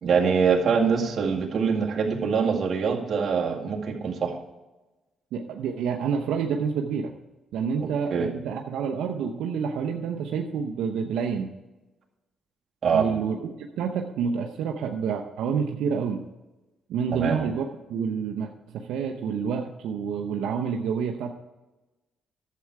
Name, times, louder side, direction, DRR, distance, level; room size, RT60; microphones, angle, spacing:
voice 1, 0.0-4.3 7.8-8.3 12.8-13.1 17.1-17.4, right 6 dB, 50° right, 0 dB, 2.1 m, -24 dB
voice 2, 5.3-7.1 7.5-11.5 12.9-16.3 16.9-21.3, right 6 dB, 85° right, 3 dB, 0.7 m, -28 dB
11.5 x 7.7 x 4.7 m, 1.1 s
cardioid pair, 90°, 0 cm